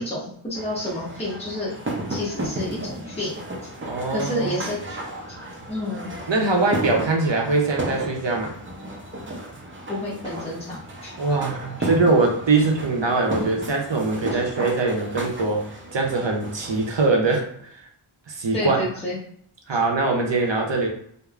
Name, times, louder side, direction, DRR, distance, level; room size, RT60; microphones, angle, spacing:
voice 1, 0.0-1.7 2.1-3.4 4.1-5.0 5.7-6.1 9.9-11.1 11.8-11.9 18.5-19.2, left 1 dB, 10° left, -7 dB, 1.0 m, -29 dB
sound 1, 0.5-17.1, right 1 dB, 25° right, 0.5 m, -33 dB
voice 2, 3.9-4.6 6.3-8.5 11.2-17.8 18.3-18.8 19.7-20.9, right 3 dB, 60° right, 1 dB, 0.7 m, -22 dB
3.1 x 2.1 x 2.4 m, 0.65 s
wide cardioid pair, 40°, 49 cm